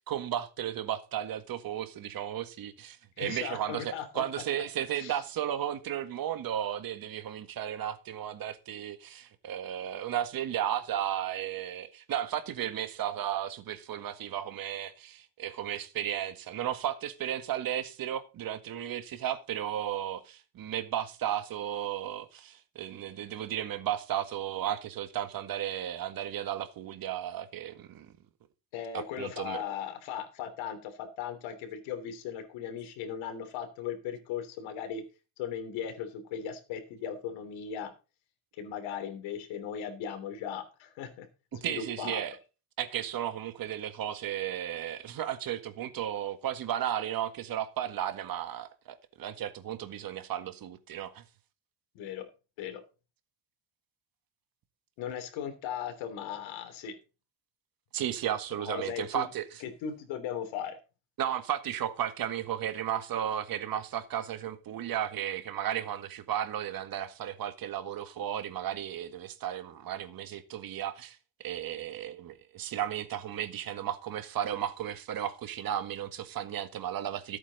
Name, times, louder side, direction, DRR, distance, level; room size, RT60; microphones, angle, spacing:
voice 1, 0.1-28.1 28.9-29.6 41.5-42.4 42.8-51.2 57.9-59.6 61.2-77.4, right 10 dB, 50° right, 1.8 m, -34 dB
voice 2, 3.2-4.2 5.0-5.2 28.7-35.0 35.4-37.9 38.6-41.3 41.5-42.2 51.9-52.3 52.6-52.8 55.0-56.9 58.5-59.2 59.6-60.8, left 8 dB, 85° left, 3.2 m, -37 dB
14.0 x 8.7 x 4.1 m
cardioid pair, 130°, 45 cm